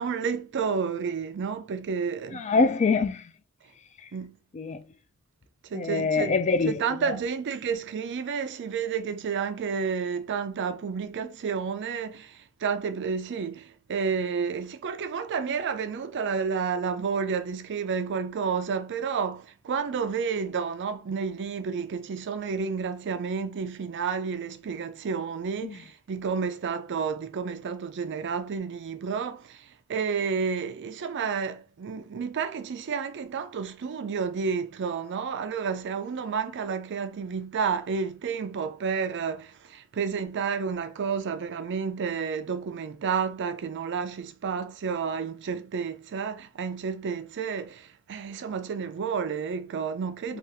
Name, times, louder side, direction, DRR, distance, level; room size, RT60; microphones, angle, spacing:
voice 1, 0.0-2.7 4.1-4.4 5.6-6.3 6.6-50.4, right 6 dB, 55° right, 0.4 m, -31 dB
voice 2, 2.3-3.3 4.5-4.8 5.7-6.7 7.0-7.2 25.6-25.8 50.3-50.4, left 4 dB, 30° left, 0.3 m, -24 dB
3.3 x 2.4 x 2.8 m
head